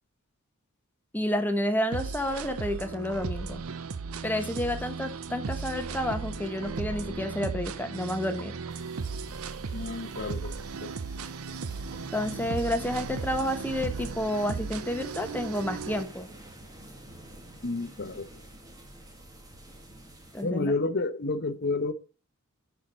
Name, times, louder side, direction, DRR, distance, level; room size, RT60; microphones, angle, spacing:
voice 1, 1.1-3.6 4.2-8.5 12.1-16.3 20.3-20.7, left 1 dB, 10° left, 1.1 m, -30 dB
sound 1, 1.9-16.0, right 4 dB, 75° right, 0.6 m, -36 dB
sound 2, 8.7-20.4, right 1 dB, 15° right, 1.7 m, -48 dB
voice 2, 9.7-10.5 10.8-10.9 17.6-18.3 20.4-21.9, left 3 dB, 50° left, 0.8 m, -30 dB
10.5 x 4.6 x 5.2 m
head